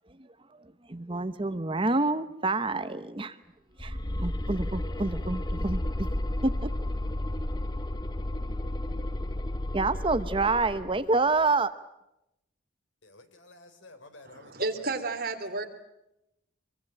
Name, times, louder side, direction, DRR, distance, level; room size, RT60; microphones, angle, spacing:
voice 1, 0.2-0.6 0.9-3.4 3.8-6.1 6.4-6.7 9.7-11.7, right 3 dB, 25° right, 0.9 m, -28 dB
sound 1, 3.8-11.0, left 1 dB, 20° left, 0.9 m, -32 dB
voice 2, 13.0-14.9 15.5-15.6, left 2 dB, 80° left, 3.6 m, -52 dB
voice 3, 14.2-15.6, right 3 dB, 50° right, 3.2 m, -32 dB
25.5 x 23.0 x 8.9 m
head